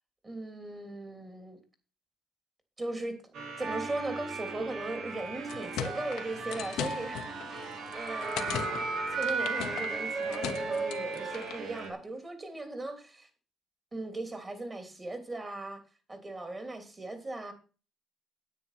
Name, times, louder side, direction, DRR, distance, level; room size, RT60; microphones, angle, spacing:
voice 1, 0.2-1.6 2.8-3.2 3.6-8.8 9.1-13.3 13.9-15.8 16.1-17.5, right 2 dB, 25° right, 3.3 m, -38 dB
sound 1, 3.3-11.9, right 4 dB, 75° right, 3.3 m, -35 dB
sound 2, 5.3-11.7, left 10 dB, 90° left, 1.1 m, -40 dB
9.9 x 8.7 x 5.8 m
cardioid pair, 105°, 0 cm